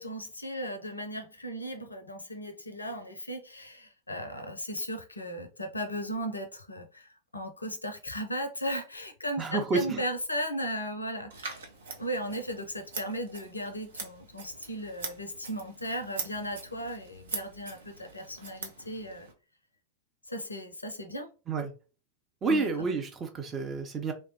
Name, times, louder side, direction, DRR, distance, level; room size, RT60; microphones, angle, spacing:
voice 1, 0.0-11.6 12.0-19.3 20.3-21.3 22.5-22.9, equal, 80° left, 0.5 m, -36 dB
voice 2, 9.4-10.0 21.5-21.7 22.4-24.1, right 4 dB, 25° right, 0.6 m, -29 dB
Scissors, 11.3-19.3, right 4 dB, 65° right, 0.6 m, -43 dB
3.1 x 2.1 x 2.8 m
figure-of-eight pair, 90°, 0 cm